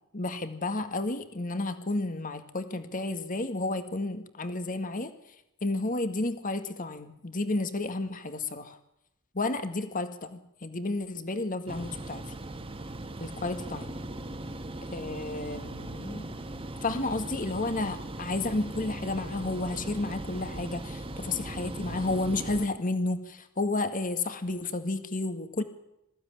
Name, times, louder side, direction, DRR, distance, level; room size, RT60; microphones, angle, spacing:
voice 1, 0.1-5.1 5.6-8.8 9.3-12.2 13.2-13.9 14.9-16.3 16.8-25.6, left 2 dB, 40° left, 9 dB, 2.0 m, -31 dB
sound 1, 11.7-22.7, right 1 dB, 25° right, 1.8 m, -39 dB
22.0 x 15.5 x 10.0 m, 0.84 s
head